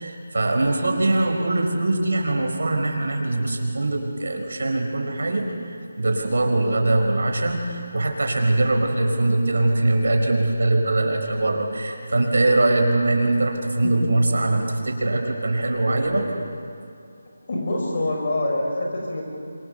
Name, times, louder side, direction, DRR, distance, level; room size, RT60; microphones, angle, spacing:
voice 1, 0.0-16.3, right 2 dB, 70° right, 2 dB, 5.2 m, -22 dB
voice 2, 17.5-19.2, left 1 dB, 40° left, 0 dB, 5.9 m, -25 dB
26.0 x 25.5 x 6.9 m, 2.5 s
figure-of-eight pair, 175°, 0 cm